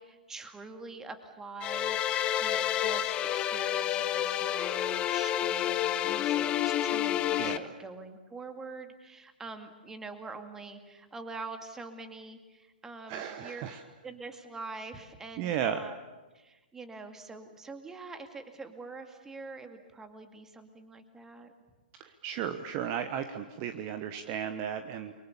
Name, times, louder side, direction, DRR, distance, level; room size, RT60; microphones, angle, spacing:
voice 1, 0.0-13.6 14.0-16.0 16.3-21.5, right 3 dB, 10° right, 7 dB, 2.3 m, -45 dB
sound 1, 1.6-7.6, left 11 dB, 20° left, 0.8 m, -29 dB
voice 2, 7.4-7.7 13.1-13.8 15.4-15.9 22.0-25.1, right 9 dB, 30° right, 8 dB, 1.2 m, -34 dB
30.0 x 23.5 x 7.1 m, 1.2 s
figure-of-eight pair, 115°, 5 cm